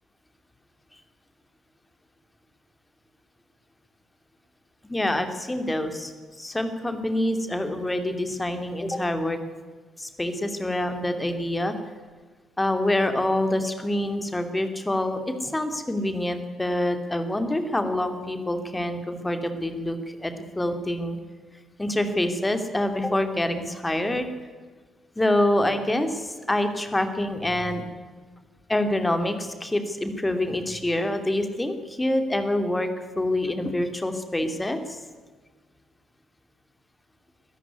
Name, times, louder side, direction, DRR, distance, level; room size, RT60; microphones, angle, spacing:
voice 1, 4.8-6.1 6.4-9.4 10.0-11.7 12.6-21.2 21.8-24.3 25.2-27.8 28.7-32.9 33.2-35.0, left 1 dB, 15° left, 8 dB, 2.8 m, -26 dB
22.0 x 14.0 x 9.6 m, 1.4 s
figure-of-eight pair, 45°, 0 cm